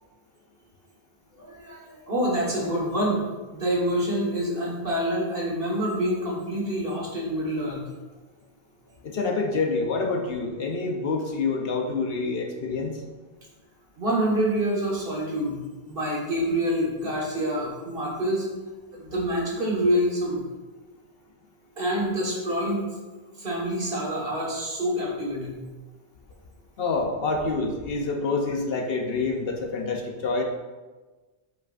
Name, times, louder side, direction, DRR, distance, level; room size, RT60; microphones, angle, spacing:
voice 1, 1.4-3.2 3.5-7.9 14.0-15.6 15.8-18.5 18.9-20.4 21.8-22.9 23.4-25.6, equal, 60° right, -4 dB, 1.7 m, -26 dB
voice 2, 9.0-13.0 26.8-30.4, left 3 dB, 65° left, 2 dB, 1.0 m, -27 dB
8.0 x 4.8 x 2.5 m, 1.3 s
omnidirectional pair, 1.1 m